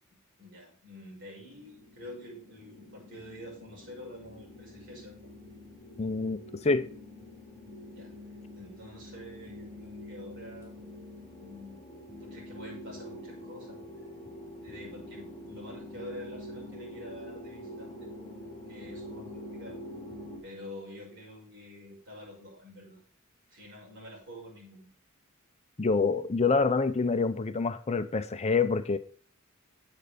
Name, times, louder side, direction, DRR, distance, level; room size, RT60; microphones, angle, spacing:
voice 1, 0.4-5.2 7.9-8.1 8.6-10.9 11.4-11.8 12.2-13.8 14.6-18.1 18.7-19.8 20.4-23.0 23.5-24.9, left 1 dB, 60° right, 6.1 m, -47 dB
sound 1, 1.5-20.4, left 1 dB, 10° left, 3.6 m, -46 dB
voice 2, 6.0-6.9 25.8-29.0, left 4 dB, 30° left, 0.5 m, -27 dB
9.2 x 7.7 x 5.0 m
head